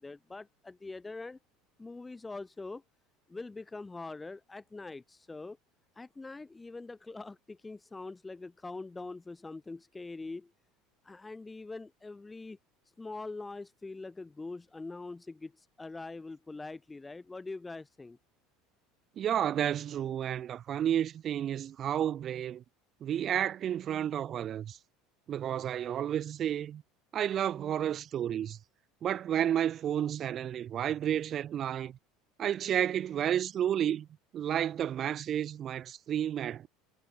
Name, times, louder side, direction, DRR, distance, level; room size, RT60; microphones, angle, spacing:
voice 1, 0.0-1.4 1.8-2.8 3.3-5.6 5.9-10.5 11.0-12.6 13.0-18.2, left 3 dB, 15° left, 5.0 m, -43 dB
voice 2, 19.2-22.6 23.0-24.8 25.3-26.8 27.1-28.6 29.0-32.0 32.4-34.1 34.3-36.7, right 10 dB, 40° right, 0.6 m, -31 dB
figure-of-eight pair, 70°, 0 cm